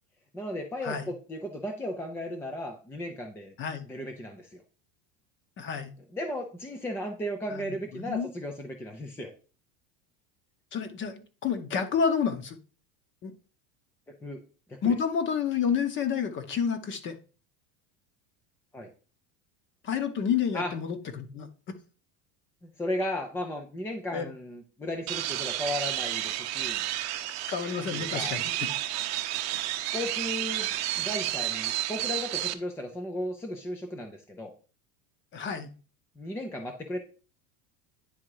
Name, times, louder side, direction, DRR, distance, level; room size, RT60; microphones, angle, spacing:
voice 1, 0.3-3.5 3.9-4.6 6.1-9.3 14.2-14.4 14.7-15.0 18.7-18.9 20.5-20.7 22.6-26.8 27.8-28.4 29.9-30.7 31.0-34.5 36.2-37.0, left 1 dB, 5° left, 4 dB, 0.4 m, -35 dB
voice 2, 5.6-5.9 7.5-8.3 10.7-12.6 13.2-13.3 14.8-17.2 19.8-21.5 24.1-24.3 27.5-28.7 35.3-35.7, left 7 dB, 30° left, 10 dB, 0.9 m, -29 dB
sound 1, 25.1-32.5, right 14 dB, 40° right, 0.7 m, -31 dB
9.8 x 3.7 x 4.7 m, 0.37 s
cardioid pair, 160°, 40 cm